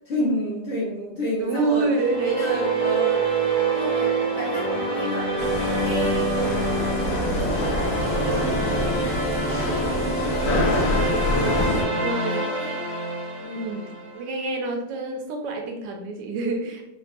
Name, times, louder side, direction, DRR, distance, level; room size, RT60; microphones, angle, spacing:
voice 1, 0.1-1.9 2.2-3.3 3.7-5.3 5.7-12.8 13.4-13.8, equal, 50° left, -6 dB, 0.9 m, -32 dB
voice 2, 1.4-2.6 12.0-12.5 13.5-16.8, right 3 dB, 90° right, 3 dB, 1.3 m, -27 dB
sound 1, 1.8-14.2, right 3 dB, 65° right, 1.3 m, -26 dB
sound 2, 5.4-11.8, left 1 dB, 80° left, 1.3 m, -25 dB
3.4 x 2.2 x 2.4 m, 0.84 s
omnidirectional pair, 1.9 m